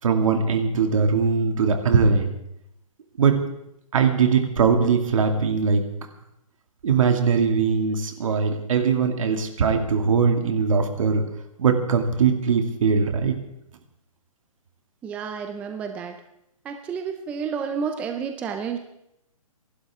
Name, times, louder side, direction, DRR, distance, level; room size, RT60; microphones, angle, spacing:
voice 1, 0.0-2.3 3.2-3.4 3.9-5.9 6.8-11.2 11.6-13.4, right 5 dB, 65° right, 5 dB, 2.3 m, -21 dB
voice 2, 15.0-16.2 16.6-18.8, right 6 dB, 5° right, 6 dB, 0.4 m, -30 dB
26.5 x 11.5 x 3.6 m, 0.81 s
hypercardioid pair, 160°, 18 cm